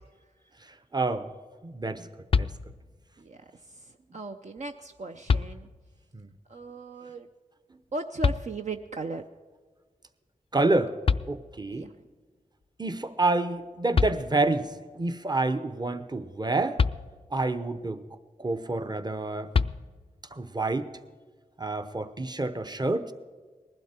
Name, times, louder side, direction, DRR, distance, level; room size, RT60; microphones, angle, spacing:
voice 1, 0.9-1.3 1.6-2.1 2.4-2.5 6.1-6.3 10.5-10.9 11.3-11.9 12.8-14.7 14.9-16.8 17.3-18.0 18.4-19.5 20.3-20.9 21.6-23.1, right 2 dB, 30° right, 10 dB, 0.8 m, -28 dB
sound 1, 2.3-3.1 4.6-4.7 5.3-6.0 8.2-9.0 10.7-10.8 11.0-11.9 13.6-13.7 13.9-14.7 16.8-17.6 19.5-20.3, left 5 dB, 40° left, 0.3 m, -28 dB
voice 2, 3.7-5.7 6.5-7.3 7.9-9.2 11.7-11.9, right 3 dB, 55° right, 5 dB, 0.6 m, -37 dB
19.5 x 12.0 x 4.4 m, 1.5 s
cardioid pair, 50°, 15 cm